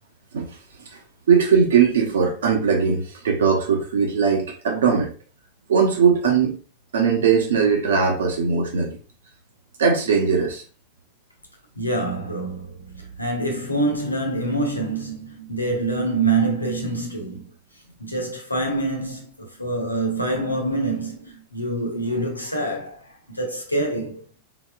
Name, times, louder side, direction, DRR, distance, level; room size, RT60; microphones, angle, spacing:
voice 1, 0.3-1.0 1.3-5.1 5.7-6.6 6.9-9.0 9.8-10.6, right 6 dB, 65° right, 1.2 m, -20 dB
voice 2, 11.8-17.5 18.0-24.2, right 2 dB, 85° left, 1.0 m, -26 dB
4.1 x 4.0 x 2.4 m
figure-of-eight pair, 90°, 0 cm